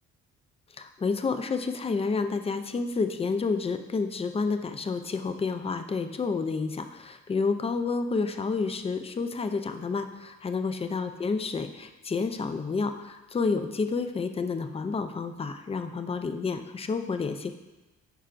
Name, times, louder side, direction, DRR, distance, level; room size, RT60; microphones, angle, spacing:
voice 1, 0.8-17.5, left 4 dB, 20° left, 8 dB, 0.4 m, -30 dB
10.0 x 4.6 x 2.5 m, 1.1 s
cardioid pair, 90°, 30 cm